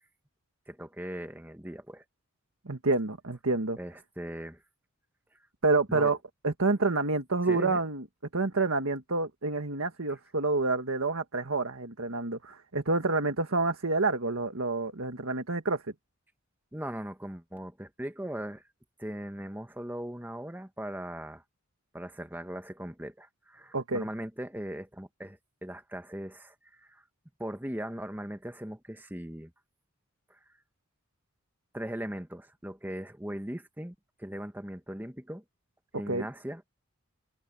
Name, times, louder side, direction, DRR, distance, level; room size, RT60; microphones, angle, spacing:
voice 1, 0.7-2.0 3.8-4.6 5.9-6.1 7.4-7.8 16.7-18.6 19.0-21.4 21.9-27.0 27.4-29.5 30.3-30.4 31.7-35.4 35.9-36.6, right 1 dB, 10° right, 1.4 m, -39 dB
voice 2, 2.6-3.8 5.6-6.2 6.4-8.0 8.3-15.8 23.7-24.0 36.1-36.3, right 3 dB, 75° right, 1.6 m, -28 dB
head